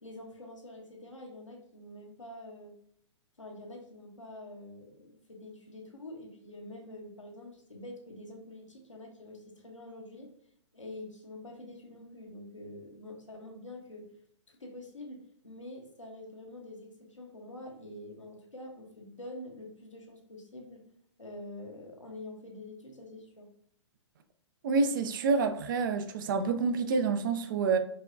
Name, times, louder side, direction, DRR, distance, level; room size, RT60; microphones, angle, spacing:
voice 1, 0.0-2.7 3.4-10.3 10.7-14.1 14.5-20.8 21.2-23.5, left 1 dB, 85° left, 1.0 m, -46 dB
voice 2, 24.6-27.8, right 4 dB, 45° right, 0.5 m, -28 dB
4.6 x 2.9 x 2.6 m
figure-of-eight pair, 115°, 16 cm